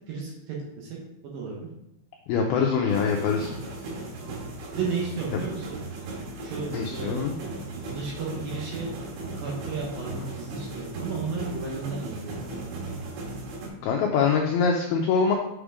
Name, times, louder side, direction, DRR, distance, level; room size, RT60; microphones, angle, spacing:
voice 1, 0.1-1.0 1.2-1.7 4.7-5.8 6.4-7.2 7.9-8.9 9.4-12.7, right 4 dB, 65° right, -2 dB, 2.7 m, -33 dB
voice 2, 2.3-3.5 6.7-7.3 13.8-15.3, left 6 dB, 85° left, 1 dB, 2.2 m, -24 dB
sound 1, 2.9-13.7, right 2 dB, 80° right, 4.2 m, -37 dB
7.9 x 5.1 x 4.9 m, 0.89 s
omnidirectional pair, 5.3 m